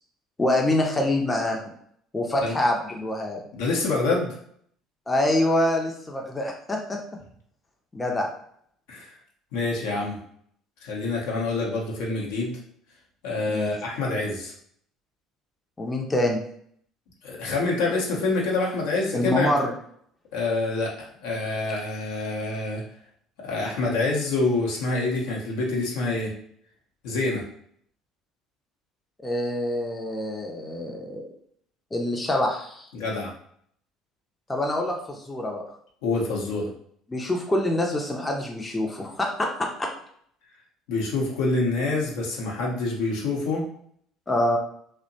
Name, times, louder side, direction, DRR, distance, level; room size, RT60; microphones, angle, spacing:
voice 1, 0.4-1.6 2.1-3.4 5.1-7.0 7.9-8.3 13.4-13.7 15.8-16.4 19.1-19.7 29.2-31.3 31.9-32.9 34.5-35.6 37.1-39.9 44.3-44.6, left 1 dB, 20° left, 1 dB, 0.5 m, -25 dB
voice 2, 3.5-4.4 8.9-9.1 9.5-10.2 10.8-12.6 13.2-14.5 17.2-19.5 20.3-22.8 23.4-26.3 27.0-27.4 32.9-33.3 36.0-36.7 40.9-43.6, left 3 dB, 70° left, -2 dB, 0.6 m, -26 dB
2.7 x 2.1 x 2.6 m, 0.65 s
hypercardioid pair, 60°, 0 cm